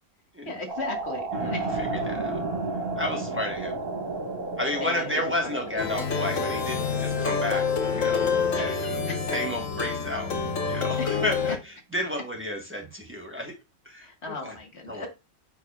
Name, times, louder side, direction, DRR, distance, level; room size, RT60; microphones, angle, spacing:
voice 1, 0.5-1.8 4.8-5.5 8.5-9.0 9.3-9.4 11.0-11.2 14.0-15.1, left 3 dB, 50° left, 2 dB, 1.8 m, -36 dB
sound 1, 0.7-9.3, right 2 dB, 45° right, 1.4 m, -35 dB
sound 2, 1.3-7.4, right 3 dB, 65° right, 1.5 m, -36 dB
voice 2, 1.4-2.4 3.0-3.8 4.6-10.4 10.7-13.5 13.8-14.5 14.9-15.1, left 1 dB, 10° right, 1 dB, 1.1 m, -32 dB
Plucked string instrument, 5.8-11.6, left 5 dB, 70° left, 1.4 m, -27 dB
8.8 x 4.8 x 2.3 m, 0.26 s
omnidirectional pair, 1.4 m